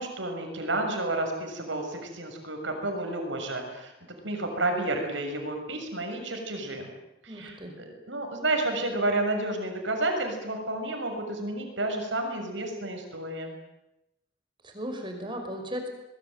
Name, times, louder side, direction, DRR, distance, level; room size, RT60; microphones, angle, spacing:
voice 1, 0.0-3.9 4.2-6.9 7.2-13.6, right 2 dB, 80° right, 4 dB, 6.7 m, -31 dB
voice 2, 7.3-7.7 14.6-15.9, equal, 25° right, 5 dB, 5.4 m, -36 dB
24.0 x 21.5 x 9.1 m, 0.92 s
head